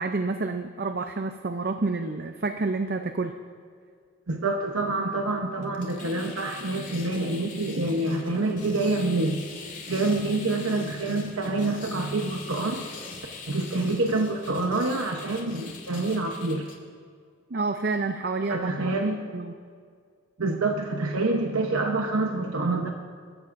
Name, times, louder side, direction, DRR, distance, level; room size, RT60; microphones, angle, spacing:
voice 1, 0.0-3.3 17.5-18.9 19.3-19.5, right 3 dB, 45° right, 6 dB, 0.6 m, -29 dB
voice 2, 4.3-9.4 9.9-12.9 13.5-16.7 18.5-19.2 20.4-22.9, right 2 dB, 90° right, 3 dB, 1.0 m, -27 dB
sound 1, 5.6-16.8, left 4 dB, 40° left, 2.0 m, -43 dB
26.5 x 14.0 x 2.6 m, 2.1 s
head